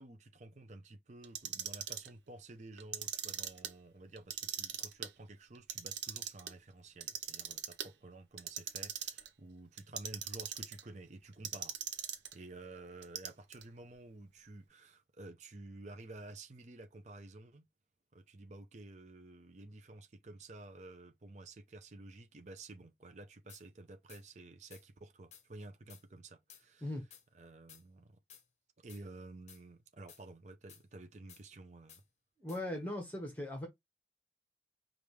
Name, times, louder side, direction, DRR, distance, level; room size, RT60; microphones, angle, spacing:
voice 1, 0.0-17.7 18.1-26.9 27.3-28.2 28.8-32.0, right 2 dB, 40° right, 0.6 m, -52 dB
Clock, 1.2-2.1 2.8-3.7 4.2-5.1 5.5-6.5 7.0-7.9 8.4-9.3 9.8-10.8 11.4-12.3 13.0-13.6, right 9 dB, 85° right, 0.7 m, -40 dB
sound 1, 23.5-23.6 24.1-24.2 24.7-24.8 25.3-25.5 25.9-26.0 26.5-26.6 27.1-27.2 27.7-27.8 28.3-28.5 28.9-29.0 29.5-29.6 30.1-30.2 30.7-30.8 31.3-31.4 31.9-32.0 32.5-32.6, left 8 dB, 40° left, 0.8 m, -57 dB
voice 2, 32.4-33.7, left 1 dB, 10° left, 1.2 m, -39 dB
5.1 x 2.5 x 3.1 m
head